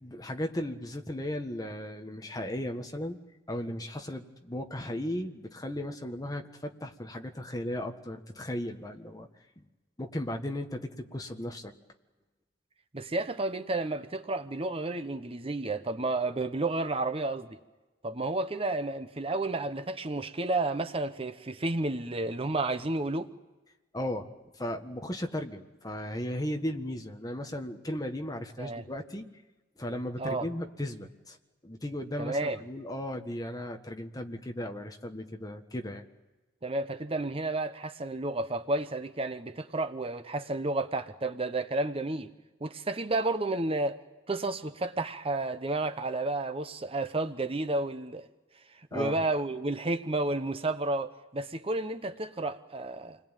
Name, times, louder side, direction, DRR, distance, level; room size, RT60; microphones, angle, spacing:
voice 1, 0.0-3.2 3.5-9.3 9.6-9.7 10.0-11.7 23.9-24.3 24.5-29.2 29.8-31.4 31.6-36.1 48.9-49.2, left 1 dB, 20° left, 1.6 m, -36 dB
voice 2, 12.9-17.6 18.0-23.3 28.6-28.8 30.2-30.5 32.2-32.6 36.6-42.3 42.6-44.0 44.3-48.3 48.9-53.2, right 2 dB, 35° right, 0.9 m, -31 dB
28.5 x 21.0 x 9.1 m
head